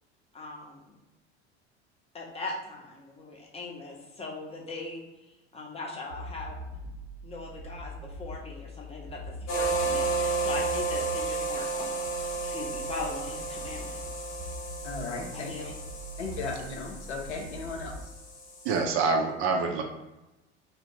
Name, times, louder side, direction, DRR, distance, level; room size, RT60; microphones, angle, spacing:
voice 1, 0.3-0.8 2.1-5.0 5.5-6.6 7.2-11.9 12.4-13.9 15.3-15.6, left 3 dB, 20° left, -2 dB, 0.7 m, -39 dB
sound 1, 6.1-18.0, right 1 dB, 90° right, 0.8 m, -42 dB
sound 2, 9.5-18.8, right 3 dB, 60° left, 0.9 m, -33 dB
voice 2, 14.8-15.5 16.2-18.1, left 4 dB, 80° left, 2 dB, 0.6 m, -36 dB
voice 3, 18.6-19.8, right 4 dB, 40° right, 2 dB, 0.4 m, -26 dB
2.4 x 2.0 x 3.5 m, 1.0 s
figure-of-eight pair, 70°, 34 cm